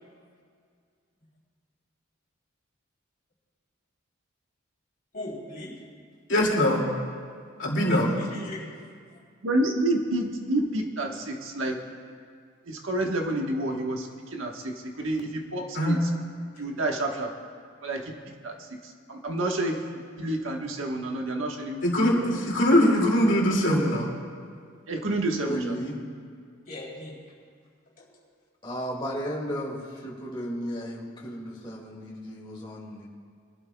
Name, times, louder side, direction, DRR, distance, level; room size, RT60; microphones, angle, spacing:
voice 1, 5.1-5.8 7.9-8.7 26.6-27.2 28.0-28.1, left 1 dB, 45° left, -4 dB, 3.3 m, -38 dB
voice 2, 6.3-6.8 7.6-8.1 15.7-16.0 21.8-24.1, equal, 65° left, -2 dB, 2.4 m, -22 dB
voice 3, 9.4-11.7 12.7-14.1 14.3-16.0 16.6-17.3 17.8-18.0 18.4-18.5 19.1-19.8 20.2-22.3 24.9-25.6, right 1 dB, 75° right, 2 dB, 1.3 m, -29 dB
voice 4, 25.4-26.0 28.6-33.1, equal, 25° left, -3 dB, 2.1 m, -34 dB
23.0 x 12.5 x 2.3 m, 2.1 s
head